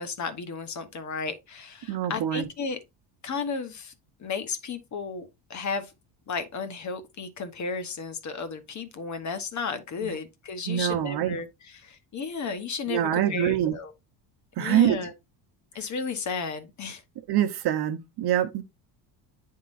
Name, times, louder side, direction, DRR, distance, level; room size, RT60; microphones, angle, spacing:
voice 1, 0.0-2.8 3.2-3.9 4.2-5.9 6.3-13.9 14.6-15.1 15.7-17.0, left 5 dB, 35° left, 1.0 m, -33 dB
voice 2, 1.9-2.5 10.0-10.1 10.7-11.4 12.9-13.7 14.6-15.0 17.3-18.6, right 11 dB, 50° right, 0.9 m, -25 dB
10.0 x 3.7 x 2.5 m
cardioid pair, 125°, 50 cm